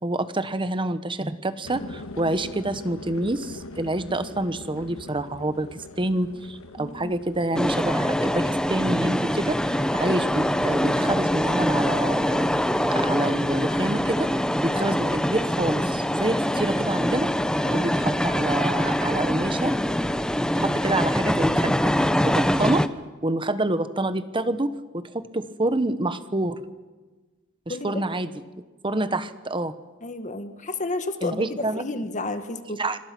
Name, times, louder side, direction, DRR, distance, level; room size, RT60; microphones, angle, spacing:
voice 1, 0.0-17.3 17.7-19.8 20.6-21.9 22.2-22.8 23.2-26.6 27.7-28.3 28.8-29.7 31.2-31.8 32.8-33.0, right 2 dB, 25° right, 12 dB, 1.2 m, -27 dB
sound 1, 1.6-16.2 16.5-17.1, left 2 dB, 80° left, 1.5 m, -44 dB
voice 2, 6.8-7.1 17.6-17.9 27.7-28.0 30.0-32.8, left 2 dB, 35° left, 8 dB, 1.8 m, -31 dB
sound 2, 7.6-22.9, equal, 5° left, 0.8 m, -24 dB
26.5 x 25.5 x 6.2 m, 1.3 s
head